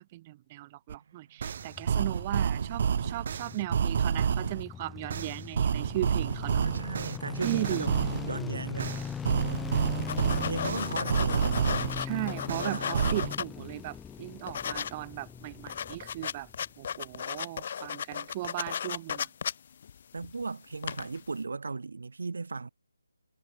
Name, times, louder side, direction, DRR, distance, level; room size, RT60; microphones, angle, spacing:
voice 1, 0.0-6.6 7.4-7.9 10.1-10.5 12.0-16.5 16.8-19.3, right 17 dB, 20° right, 1.0 m, -37 dB
sound 1, 0.9-1.0 1.4-4.6 5.1-8.3 8.8-12.0 12.5-13.3, right 7 dB, 40° right, 1.6 m, -29 dB
sound 2, 1.5-16.7 16.9-17.0, left 7 dB, 5° left, 2.4 m, -40 dB
voice 2, 6.5-9.0 10.4-11.6 12.4-13.0 20.1-22.7, right 4 dB, 70° right, 2.8 m, -36 dB
sound 3, 10.1-13.8 14.2-14.9 15.2-15.3 15.5-20.4 20.8-21.2, left 8 dB, 35° left, 3.0 m, -35 dB
figure-of-eight pair, 165°, 0 cm